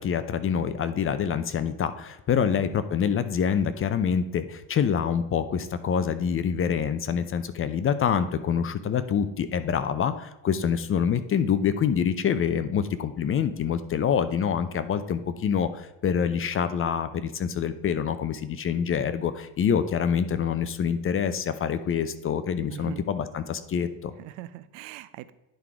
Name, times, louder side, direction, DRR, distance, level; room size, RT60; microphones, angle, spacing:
voice 1, 0.0-24.1, left 7 dB, 30° left, 12 dB, 0.5 m, -26 dB
voice 2, 2.4-2.7 22.7-23.0 24.2-25.3, right 14 dB, 80° right, 14 dB, 0.6 m, -41 dB
10.5 x 3.8 x 4.6 m, 0.95 s
cardioid pair, 115°, 44 cm